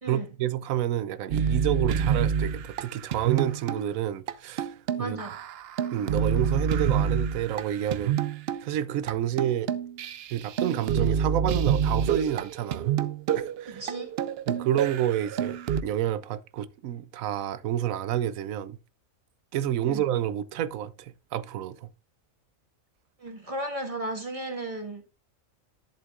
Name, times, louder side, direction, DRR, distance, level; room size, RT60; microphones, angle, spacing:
voice 1, 0.1-5.2 5.9-8.2 8.6-9.7 10.3-12.9 13.3-13.8 14.5-18.8 19.5-21.9, right 11 dB, 85° right, 1.0 m, -29 dB
sound 1, 1.3-3.8 4.3-4.4 4.6-8.6 9.1-9.2 9.4-15.8, right 7 dB, 60° right, 0.7 m, -28 dB
voice 2, 5.0-5.3 13.7-14.1 19.9-20.0 23.2-25.0, right 1 dB, 25° right, 1.6 m, -34 dB
11.0 x 7.3 x 2.4 m
omnidirectional pair, 1.4 m